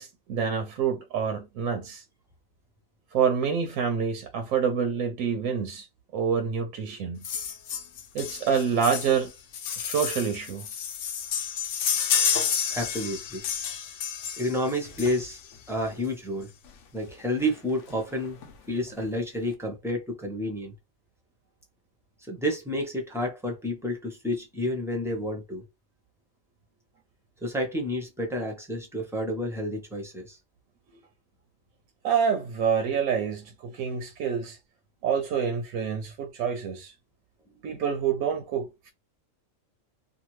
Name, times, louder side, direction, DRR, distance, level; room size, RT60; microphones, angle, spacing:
voice 1, 0.0-2.0 3.1-5.9 6.1-7.3 8.1-9.3 9.8-10.7 32.0-34.6 35.0-36.9 37.6-38.9, right 7 dB, 85° right, 1.0 m, -27 dB
sound 1, 7.2-15.6 16.7-16.8 17.1-17.2 17.4-17.6 17.9-18.5 19.0-19.1, left 7 dB, 75° left, 0.9 m, -30 dB
voice 2, 12.7-13.4 14.4-15.4 15.7-16.5 16.9-18.4 18.7-20.7 22.2-25.6 27.4-30.4, left 1 dB, 5° right, 0.6 m, -30 dB
2.7 x 2.3 x 3.0 m
omnidirectional pair, 1.3 m